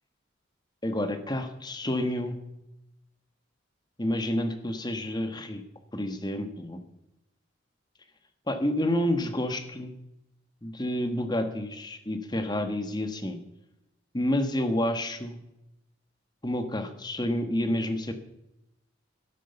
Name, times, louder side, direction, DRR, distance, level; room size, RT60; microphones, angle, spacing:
voice 1, 0.8-2.4 4.0-5.6 5.9-6.8 8.5-9.9 10.6-13.4 14.1-15.4 16.4-18.1, left 1 dB, 20° left, 9 dB, 1.4 m, -29 dB
12.0 x 10.0 x 7.0 m, 0.90 s
head